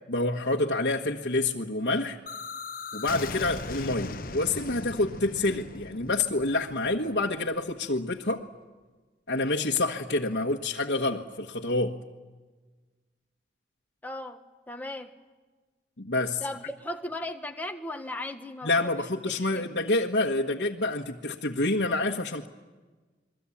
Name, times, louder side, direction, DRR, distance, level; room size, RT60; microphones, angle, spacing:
voice 1, 0.1-2.2 2.9-8.4 9.3-12.0 16.0-16.4 18.6-22.5, left 2 dB, 70° left, -2 dB, 1.4 m, -27 dB
sound 1, 2.3-8.0, left 3 dB, 50° left, 1.0 m, -39 dB
voice 2, 14.0-15.1 16.4-18.9 19.4-19.7, left 1 dB, 10° left, 4 dB, 1.5 m, -37 dB
28.5 x 22.5 x 8.6 m, 1.3 s
head